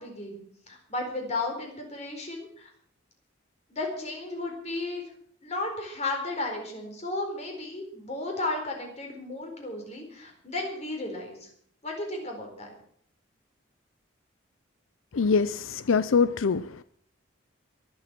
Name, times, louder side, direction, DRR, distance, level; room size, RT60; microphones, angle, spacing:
voice 1, 0.0-2.7 3.7-5.0 5.4-11.5 11.8-12.7, left 2 dB, 35° left, 2 dB, 4.3 m, -34 dB
voice 2, 15.1-16.8, left 5 dB, 85° left, 14 dB, 0.5 m, -24 dB
23.5 x 8.0 x 6.0 m, 0.62 s
head